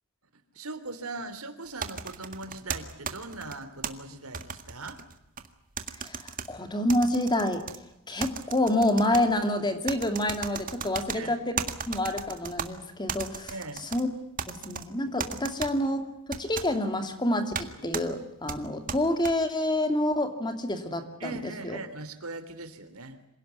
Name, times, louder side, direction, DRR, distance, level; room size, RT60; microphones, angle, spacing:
voice 1, 0.3-5.0 11.1-11.3 13.5-13.9 21.2-23.2, right 2 dB, 75° right, 9 dB, 3.4 m, -40 dB
sound 1, 1.8-3.9 4.3-5.5 5.8-6.5 6.9-7.8 8.2-9.2 9.9-11.2 11.6-12.7 13.1-14.0 14.4-14.8 15.2-15.7 16.3-16.7 17.5-17.7 17.9-18.0 18.5-19.3, right 6 dB, 40° right, 1.9 m, -35 dB
voice 2, 6.0-7.7 8.1-13.5 13.9-14.1 14.5-21.8, left 1 dB, 20° left, 7 dB, 2.6 m, -28 dB
27.0 x 18.0 x 9.6 m, 0.90 s
head